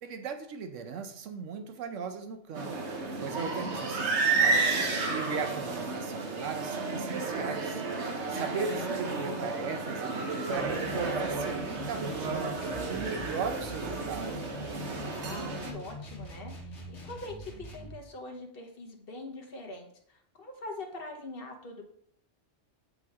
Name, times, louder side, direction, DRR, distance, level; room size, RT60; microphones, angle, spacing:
voice 1, 0.0-2.7 3.2-7.8 8.1-14.5, right 5 dB, 85° right, 7 dB, 1.1 m, -38 dB
sound 1, 2.5-15.7, right 4 dB, 65° right, 1.3 m, -32 dB
voice 2, 8.4-8.9 15.1-21.8, left 2 dB, 50° left, 2 dB, 1.3 m, -43 dB
sound 2, 10.5-18.0, left 1 dB, 75° left, 1.7 m, -43 dB
7.8 x 5.3 x 3.6 m, 0.66 s
omnidirectional pair, 1.3 m